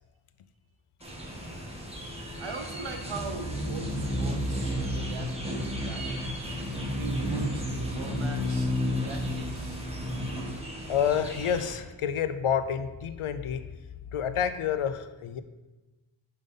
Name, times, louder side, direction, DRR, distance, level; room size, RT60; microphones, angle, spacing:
sound 1, 1.0-11.7, equal, 10° right, 1.4 m, -32 dB
voice 1, 2.4-6.3 6.9-9.8, right 4 dB, 65° right, 5 dB, 1.0 m, -41 dB
voice 2, 10.9-13.6 14.1-15.4, left 8 dB, 80° left, 11 dB, 0.6 m, -28 dB
5.4 x 5.3 x 5.4 m, 1.2 s
wide cardioid pair, 90°, 49 cm